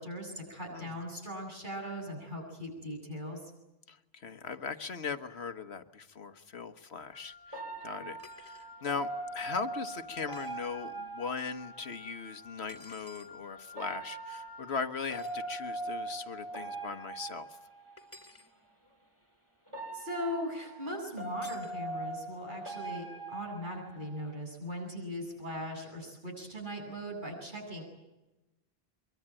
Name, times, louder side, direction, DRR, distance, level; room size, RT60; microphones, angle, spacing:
voice 1, 0.0-3.5 19.9-27.8, equal, 50° right, 1 dB, 8.3 m, -39 dB
voice 2, 3.9-17.5, left 5 dB, 75° left, 9 dB, 1.6 m, -39 dB
Wind instrument woodwind instrument, 7.1-14.9, left 4 dB, 40° left, 2.3 m, -52 dB
sound 1, 7.5-12.1 13.7-18.3 19.7-24.3, right 2 dB, 25° right, 6.7 m, -41 dB
sound 2, 8.2-8.7 10.3-10.6 12.7-13.3 15.1-15.4 18.0-18.5 21.4-21.8, left 1 dB, 15° left, 2.8 m, -53 dB
24.0 x 23.5 x 9.0 m, 1.0 s
omnidirectional pair, 1.1 m